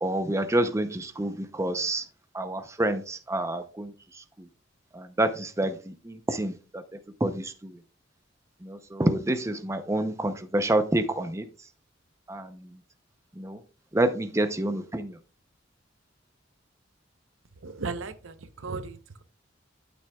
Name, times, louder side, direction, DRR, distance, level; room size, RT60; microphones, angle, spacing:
voice 1, 0.0-2.0 2.3-3.9 4.9-6.8 7.2-7.8 8.6-11.4 12.3-12.7 13.4-13.6 13.9-15.2, right 1 dB, 15° right, 0.6 m, -28 dB
voice 2, 17.6-19.2, right 4 dB, 90° right, 0.7 m, -36 dB
11.5 x 6.2 x 2.3 m
head